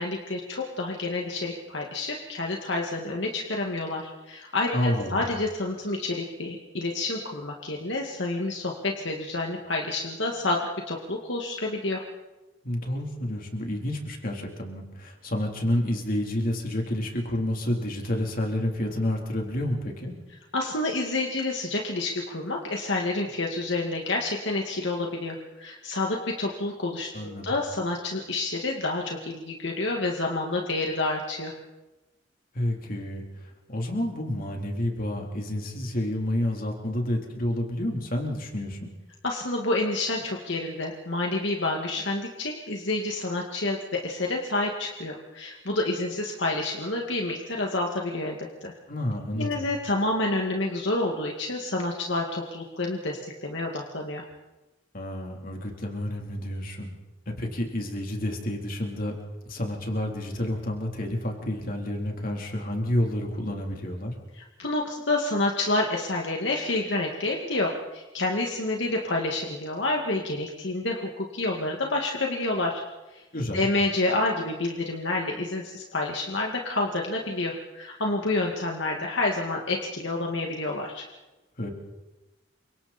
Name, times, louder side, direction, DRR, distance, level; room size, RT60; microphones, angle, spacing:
voice 1, 0.0-12.0 20.5-31.5 39.2-48.7 49.4-54.2 64.3-72.8 73.1-73.2 73.5-81.1, left 2 dB, 65° left, 0 dB, 2.3 m, -29 dB
voice 2, 4.7-5.3 12.6-20.1 27.1-27.6 32.5-38.9 48.9-49.6 54.9-56.9 57.3-59.1 59.5-64.1 73.3-73.7 81.6-81.7, left 1 dB, 50° left, 1 dB, 3.8 m, -29 dB
29.5 x 25.5 x 4.4 m, 1.1 s
head